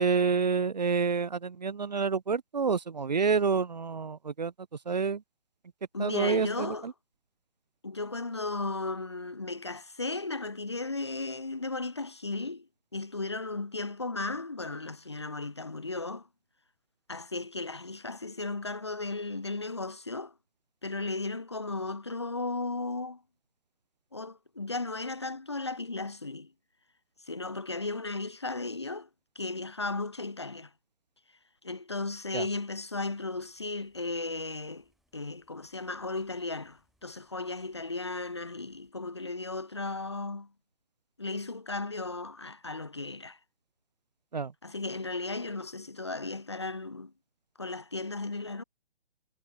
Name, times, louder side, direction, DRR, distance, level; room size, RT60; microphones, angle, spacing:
voice 1, 0.0-4.5 4.9-5.2 6.0-6.9 32.3-32.5 44.3-44.5, right 5 dB, 45° right, 0.4 m, -28 dB
voice 2, 5.9-6.9 7.8-16.3 17.1-20.3 20.8-23.2 24.1-26.5 27.2-29.1 29.4-30.7 31.6-34.8 35.1-40.5 41.2-43.4 44.6-47.1 47.6-48.6, left 3 dB, 25° left, 0.5 m, -35 dB
Traffic + Rain, 33.1-38.9, right 1 dB, ahead, 7.3 m, -76 dB
hypercardioid pair, 170°, 32 cm